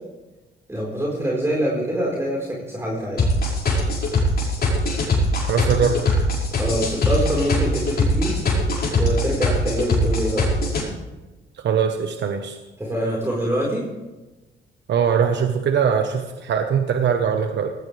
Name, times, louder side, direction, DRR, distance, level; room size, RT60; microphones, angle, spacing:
voice 1, 0.7-3.2 6.6-8.4 9.0-10.5 12.8-13.9, equal, 15° right, -4 dB, 4.7 m, -25 dB
sound 1, 3.2-10.8, left 1 dB, 50° left, 5.9 m, -21 dB
voice 2, 5.5-6.0 11.6-12.6 14.9-17.7, right 7 dB, 65° right, 5 dB, 1.2 m, -21 dB
17.5 x 17.0 x 3.5 m, 1.1 s
cardioid pair, 90°, 20 cm